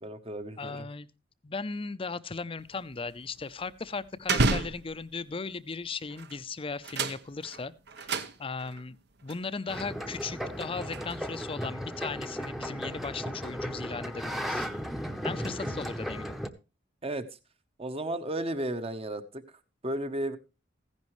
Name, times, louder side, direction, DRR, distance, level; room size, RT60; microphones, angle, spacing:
voice 1, 0.0-0.9 17.0-17.3 17.8-19.4 19.8-20.4, right 1 dB, 30° right, 1.0 m, -33 dB
voice 2, 0.6-1.1 1.4-9.0 9.2-14.7 15.2-16.4, left 4 dB, 30° left, 0.6 m, -37 dB
sound 1, 2.6-5.3 6.1-6.4 6.7-8.8 9.3-9.4 10.0-11.5, right 3 dB, 65° right, 0.9 m, -32 dB
sound 2, 9.7-16.5, equal, ahead, 0.8 m, -35 dB
15.5 x 10.5 x 3.1 m
head